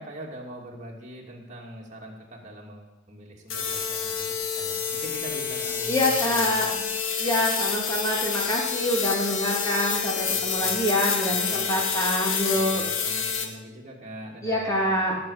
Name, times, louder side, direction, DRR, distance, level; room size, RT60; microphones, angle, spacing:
voice 1, 0.0-6.6 10.3-10.9 11.5-11.9 12.5-15.2, right 1 dB, 35° right, -2 dB, 2.8 m, -42 dB
sound 1, 3.5-13.5, left 6 dB, 90° left, 1.6 m, -28 dB
voice 2, 5.9-6.9 7.2-12.8 14.4-15.1, left 1 dB, 15° left, -2 dB, 3.1 m, -26 dB
18.0 x 7.1 x 6.6 m, 1.1 s
head